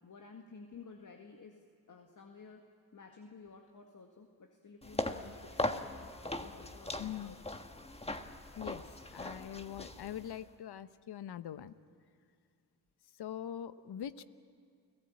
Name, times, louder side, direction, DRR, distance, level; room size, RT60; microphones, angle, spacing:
voice 1, 0.0-6.1 6.4-7.4 8.8-8.9 11.4-11.5, left 4 dB, 45° left, 4 dB, 2.0 m, -54 dB
sound 1, 4.8-10.4, left 1 dB, 15° left, 1.6 m, -40 dB
voice 2, 7.0-7.4 8.6-11.7 13.2-14.2, left 10 dB, 65° left, 14 dB, 1.0 m, -43 dB
29.5 x 17.0 x 8.7 m, 2.4 s
supercardioid pair, 50°, 43 cm